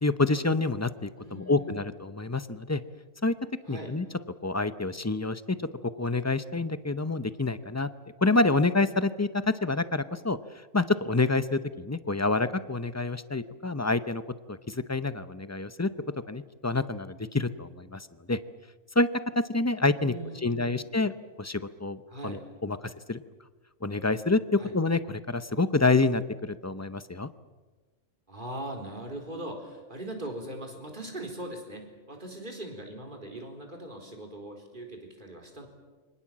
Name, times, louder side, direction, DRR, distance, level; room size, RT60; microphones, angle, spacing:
voice 1, 0.0-2.8 3.2-3.3 3.7-4.1 4.4-5.6 5.8-7.9 8.2-14.2 14.5-15.9 16.3-18.4 18.9-19.1 19.3-20.1 20.4-22.8 23.1-23.2 23.8-27.3, left 3 dB, 15° left, 13 dB, 0.6 m, -27 dB
voice 2, 1.2-1.8 3.6-3.9 20.0-20.8 22.1-22.4 24.6-24.8 28.3-35.7, right 1 dB, 40° right, 2 dB, 4.3 m, -40 dB
28.0 x 24.5 x 7.5 m, 1.3 s
omnidirectional pair, 1.3 m